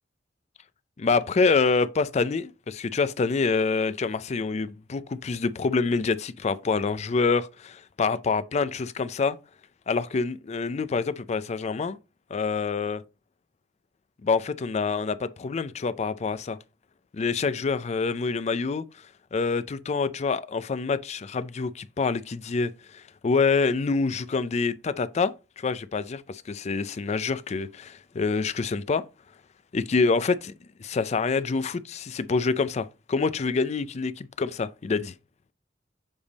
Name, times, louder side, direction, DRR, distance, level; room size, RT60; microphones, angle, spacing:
voice 1, 1.0-9.4 9.9-12.0 12.3-13.0 14.2-16.6 17.1-18.8 19.3-29.0 29.7-30.4 30.8-35.1, left 4 dB, 40° left, 0.4 m, -26 dB
7.2 x 3.5 x 4.0 m
head